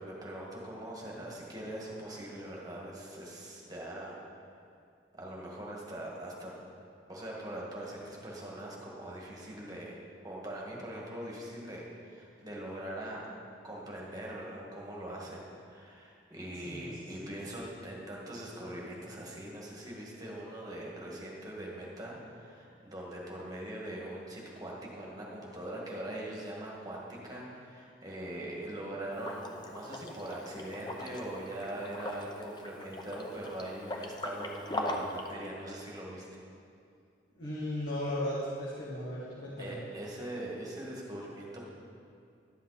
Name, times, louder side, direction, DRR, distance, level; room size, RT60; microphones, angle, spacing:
voice 1, 0.0-4.2 5.1-6.5 7.1-13.3 13.6-36.4 39.6-41.7, right 1 dB, 20° right, -3 dB, 1.8 m, -42 dB
Liquid, 29.1-35.3, left 1 dB, 25° left, 0.7 m, -40 dB
voice 2, 37.4-39.8, left 1 dB, 80° left, -9 dB, 1.8 m, -36 dB
11.5 x 7.4 x 4.2 m, 2.5 s
head